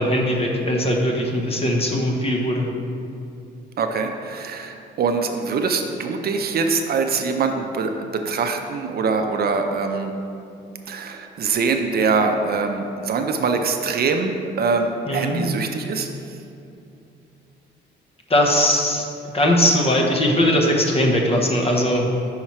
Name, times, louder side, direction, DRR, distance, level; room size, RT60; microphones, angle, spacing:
voice 1, 0.0-2.7 15.1-15.4 18.3-19.1 19.3-22.2, equal, 30° left, 0 dB, 0.9 m, -20 dB
voice 2, 3.8-10.1 10.9-16.4, right 4 dB, 50° right, 5 dB, 0.5 m, -23 dB
5.7 x 4.5 x 4.3 m, 2.6 s
cardioid pair, 90°, 20 cm